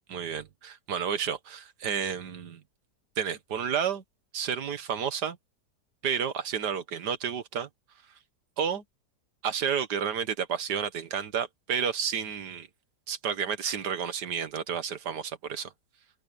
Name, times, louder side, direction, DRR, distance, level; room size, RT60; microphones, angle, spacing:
voice 1, 0.1-2.6 3.2-4.0 4.3-5.4 6.0-7.7 8.6-8.8 9.4-12.7 13.1-15.7, right 7 dB, 75° right, 1.9 m, -31 dB
open air
omnidirectional pair, 1.8 m